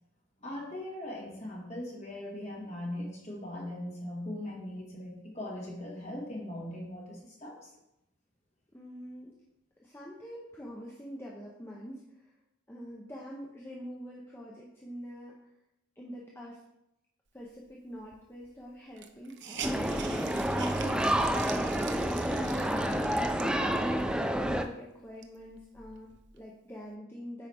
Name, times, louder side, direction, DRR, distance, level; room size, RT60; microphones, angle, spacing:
voice 1, 0.4-7.7, left 1 dB, 35° left, -2 dB, 1.8 m, -40 dB
voice 2, 8.7-9.4 9.8-12.3 12.7-15.4 16.0-16.6 17.3-22.0 23.1-27.5, equal, 10° left, -3 dB, 0.7 m, -45 dB
Hiss, 18.1-18.2 18.4-18.5 19.0-24.0 24.6-24.7 25.0-26.4, right 7 dB, 55° right, 0.6 m, -44 dB
sound 1, 19.6-24.6, right 1 dB, 5° right, 0.3 m, -29 dB
9.0 x 4.7 x 3.5 m, 0.87 s
head